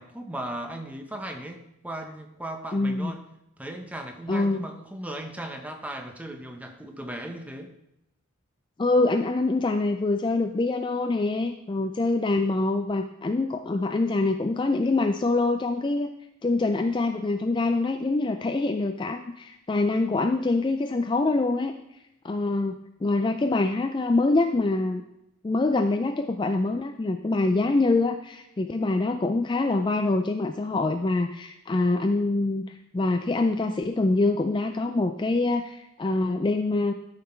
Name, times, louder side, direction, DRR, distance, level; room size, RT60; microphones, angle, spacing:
voice 1, 0.0-3.2 3.6-7.7, right 1 dB, 5° right, 5 dB, 0.8 m, -37 dB
voice 2, 2.7-3.1 4.3-4.7 8.8-16.1 16.4-21.7 22.2-25.0 25.4-36.9, left 2 dB, 20° left, 6 dB, 0.3 m, -25 dB
13.0 x 5.8 x 4.4 m, 0.84 s
head